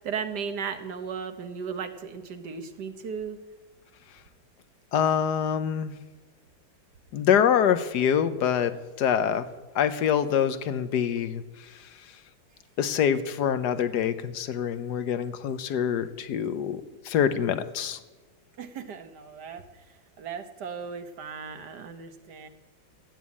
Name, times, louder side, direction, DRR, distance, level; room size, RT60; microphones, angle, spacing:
voice 1, 0.0-3.4 18.6-22.5, right 6 dB, 65° right, 8 dB, 1.6 m, -36 dB
voice 2, 4.9-5.9 7.1-8.7 9.0-9.5 9.7-11.4 12.8-18.0, left 8 dB, 65° left, 11 dB, 1.4 m, -25 dB
14.0 x 9.1 x 8.4 m, 1.3 s
omnidirectional pair, 2.0 m